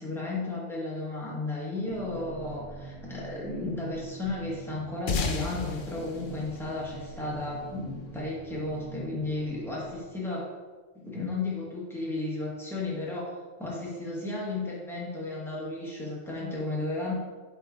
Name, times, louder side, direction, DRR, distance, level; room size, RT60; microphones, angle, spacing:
voice 1, 0.0-10.5 10.9-17.1, left 2 dB, ahead, -5 dB, 1.3 m, -34 dB
sound 1, 1.8-10.0, right 3 dB, 40° right, 1.8 m, -45 dB
sound 2, 5.1-7.9, left 4 dB, 55° left, 0.5 m, -33 dB
7.9 x 3.7 x 3.7 m, 1.4 s
omnidirectional pair, 1.5 m